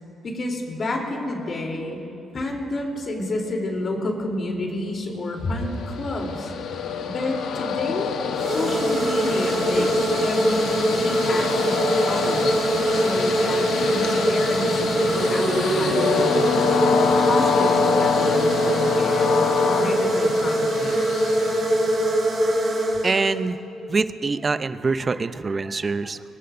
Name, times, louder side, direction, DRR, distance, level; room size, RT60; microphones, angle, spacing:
voice 1, 0.2-2.0 2.3-6.5 7.0-8.1 8.5-12.6 12.9-16.4 17.1-21.0, left 2 dB, 45° left, 0 dB, 3.4 m, -30 dB
Train, 5.6-22.3, left 6 dB, 75° left, 1.0 m, -26 dB
sound 1, 8.3-23.5, right 1 dB, 55° right, 4.7 m, -23 dB
voice 2, 23.0-23.6 23.9-26.2, right 4 dB, 35° right, 12 dB, 0.6 m, -24 dB
25.0 x 20.5 x 2.6 m, 2.9 s
cardioid pair, 90°, 0 cm